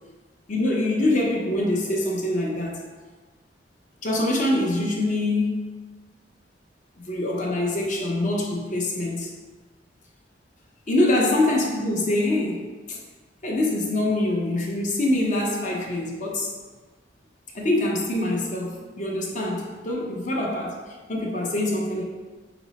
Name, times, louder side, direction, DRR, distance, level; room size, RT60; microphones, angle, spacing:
voice 1, 0.5-2.8 4.0-5.6 7.0-9.3 10.9-13.0 13.4-16.5 17.5-22.0, left 1 dB, 45° left, -1 dB, 0.7 m, -24 dB
5.9 x 2.0 x 4.1 m, 1.3 s
head